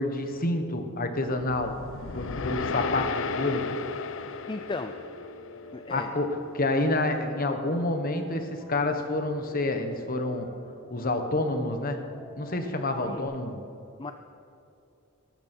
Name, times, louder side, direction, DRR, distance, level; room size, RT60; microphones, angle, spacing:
voice 1, 0.0-3.7 5.9-10.5 10.9-12.0 12.4-13.6, left 2 dB, 40° left, 6 dB, 1.3 m, -28 dB
sound 1, 1.4-5.7, left 4 dB, 60° left, 0.6 m, -34 dB
Piano, 4.5-13.2, left 3 dB, 90° left, 2.6 m, -46 dB
voice 2, 4.5-5.0 5.7-6.1 13.1-13.3 14.0-14.1, left 3 dB, 20° left, 8 dB, 0.4 m, -35 dB
18.5 x 13.5 x 4.5 m, 2.6 s
head